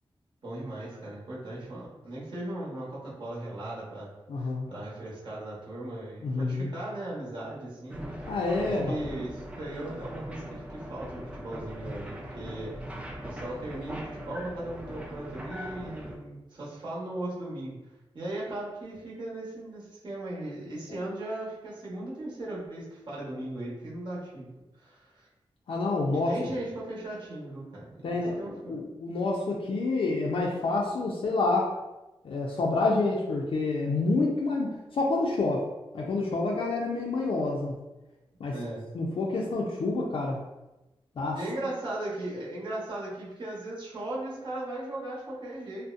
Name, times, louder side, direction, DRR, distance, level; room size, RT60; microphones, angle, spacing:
voice 1, 0.4-4.1 4.4-8.3 8.6-17.8 18.1-24.5 24.8-25.3 26.1-28.8 38.5-38.8 41.3-45.9, right 1 dB, 50° right, -7 dB, 1.0 m, -37 dB
voice 2, 4.3-4.7 6.2-6.7 8.3-9.0 20.9-21.0 25.7-26.3 28.0-31.7 32.2-35.6 35.9-37.8 38.4-38.5 38.9-40.4 41.2-41.4, left 3 dB, 65° left, -3 dB, 0.4 m, -28 dB
sound 1, 7.9-16.2, equal, 10° right, 0.4 m, -40 dB
2.6 x 2.0 x 2.4 m, 1.0 s
wide cardioid pair, 80°, 10 cm